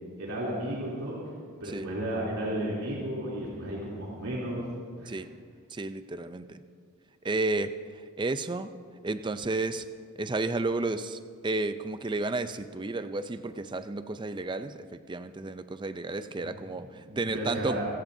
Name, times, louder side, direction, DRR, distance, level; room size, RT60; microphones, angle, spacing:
voice 1, 0.2-1.2 1.6-4.6 5.0-5.2 16.4-16.5 17.1-17.9, right 1 dB, 80° right, -6 dB, 3.1 m, -33 dB
voice 2, 5.7-6.6 7.2-7.7 8.2-8.7 9.0-9.9 10.2-17.8, right 2 dB, 20° right, 11 dB, 0.4 m, -32 dB
26.0 x 16.0 x 2.7 m, 2.1 s
head